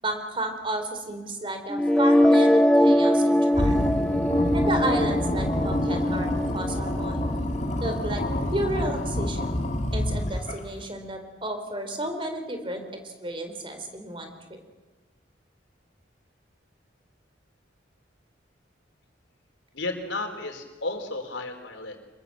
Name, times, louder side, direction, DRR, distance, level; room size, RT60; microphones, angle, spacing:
voice 1, 0.0-3.7 4.5-7.2 7.8-8.2 8.5-9.5 9.9-14.6, right 1 dB, 30° right, 6 dB, 3.9 m, -32 dB
sound 1, 1.7-7.7, left 1 dB, 5° left, 0.8 m, -22 dB
sound 2, 3.5-10.8, left 1 dB, 40° left, 2.1 m, -27 dB
voice 2, 19.7-22.0, left 2 dB, 80° left, 5 dB, 4.1 m, -33 dB
26.5 x 21.5 x 7.8 m, 1.2 s
head